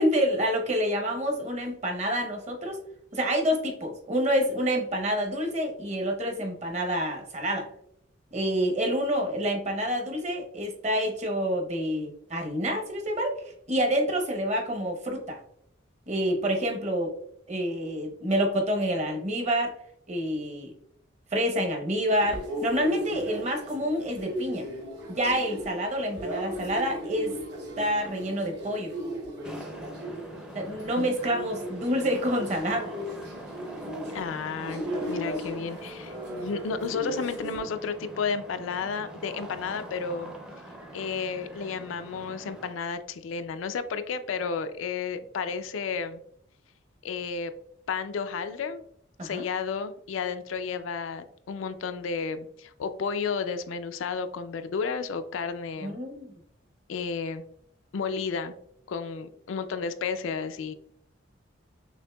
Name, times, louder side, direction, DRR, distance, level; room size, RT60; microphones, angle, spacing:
voice 1, 0.0-2.8 3.1-7.7 8.3-13.4 13.7-15.4 16.1-17.1 17.5-19.7 20.1-20.7 21.3-24.7 25.2-27.3 27.8-28.9 30.5-32.9 49.2-49.4 55.8-56.3, equal, 35° right, 2 dB, 0.8 m, -27 dB
sound 1, 22.1-37.6, equal, 60° right, 1.1 m, -36 dB
sound 2, 29.4-42.7, right 1 dB, 5° right, 0.4 m, -43 dB
voice 2, 34.1-40.3 40.9-46.2 47.0-47.5 47.9-48.8 49.2-56.0 56.9-57.4 57.9-58.5 58.9-60.7, left 5 dB, 85° left, 10 dB, 0.4 m, -32 dB
6.3 x 2.6 x 2.2 m, 0.69 s
head